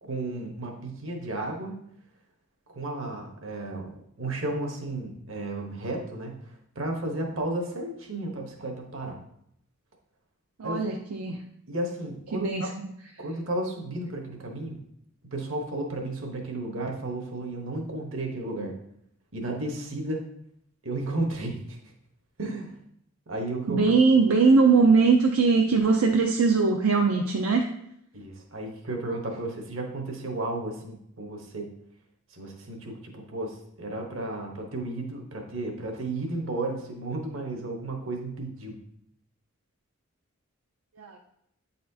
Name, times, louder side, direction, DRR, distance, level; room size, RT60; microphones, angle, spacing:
voice 1, 0.0-1.8 2.7-3.9 4.2-6.4 6.7-9.2 10.6-10.8 11.7-12.7 13.2-14.8 15.3-18.7 19.3-20.2 20.8-21.8 22.4-22.8 23.3-24.0 28.1-31.7 32.3-38.8, right 2 dB, 65° right, 2 dB, 1.1 m, -33 dB
voice 2, 10.6-11.4 12.3-12.7 23.7-27.7 41.0-41.2, right 4 dB, 85° right, 2 dB, 0.5 m, -21 dB
8.4 x 4.2 x 2.7 m, 0.72 s
head